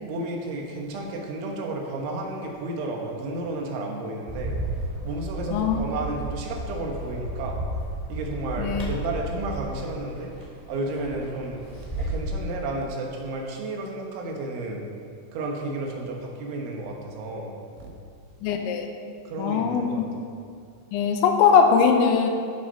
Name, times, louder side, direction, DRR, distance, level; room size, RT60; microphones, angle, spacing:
voice 1, 0.0-4.6 5.0-7.6 8.1-10.3 10.7-11.7 12.0-14.8 15.3-17.9 19.3-20.0, right 2 dB, 85° right, 0 dB, 4.0 m, -32 dB
Bird, 4.3-12.3, right 1 dB, 10° right, 2.7 m, -33 dB
voice 2, 5.5-5.9 8.6-8.9 18.4-18.9 19.4-20.1 20.9-22.3, left 6 dB, 80° left, 4 dB, 3.3 m, -21 dB
14.5 x 11.0 x 4.2 m, 2.4 s
omnidirectional pair, 5.3 m